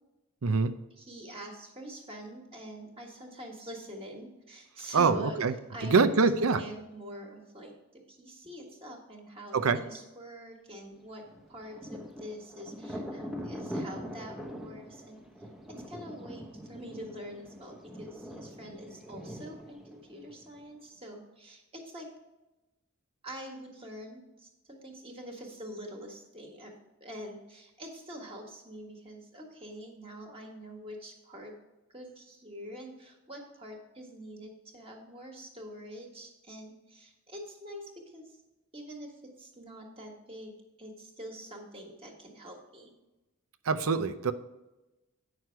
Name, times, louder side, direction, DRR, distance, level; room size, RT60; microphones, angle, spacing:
voice 1, 0.4-0.7 4.9-5.5 5.8-6.6 9.5-9.8 43.7-44.3, right 4 dB, 80° right, 10 dB, 0.6 m, -24 dB
voice 2, 1.0-5.4 5.7-7.7 8.1-11.2 11.5-15.5 15.9-22.1 23.2-26.7 27.0-31.5 31.9-38.4 38.7-40.5 40.8-42.9, equal, 25° right, 1 dB, 1.7 m, -45 dB
Thunder, 11.3-20.8, equal, ahead, 0.8 m, -43 dB
9.2 x 6.4 x 4.6 m, 1.0 s
head